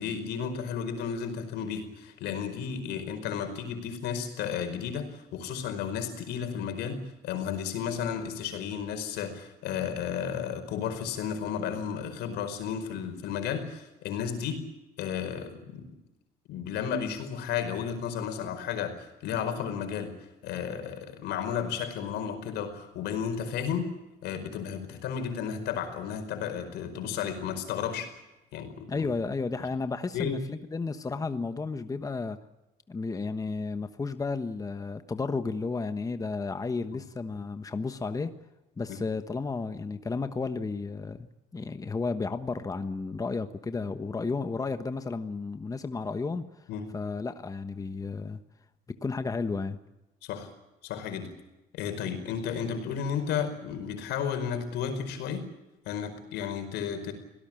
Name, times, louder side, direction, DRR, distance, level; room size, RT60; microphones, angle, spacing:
voice 1, 0.0-14.6 15.0-15.9 16.5-20.1 20.4-23.9 24.2-28.1 28.5-29.1 30.1-30.4 38.9-39.0 46.7-46.9 50.2-50.5 50.8-51.3 51.7-55.4 55.8-57.1, left 7 dB, 85° left, 7 dB, 5.0 m, -33 dB
voice 2, 28.9-32.4 32.9-38.3 38.8-41.3 41.5-46.6 46.9-48.4 48.9-49.8, left 4 dB, 20° left, 9 dB, 1.2 m, -33 dB
25.0 x 18.0 x 8.9 m, 0.99 s
cardioid pair, 110°, 17 cm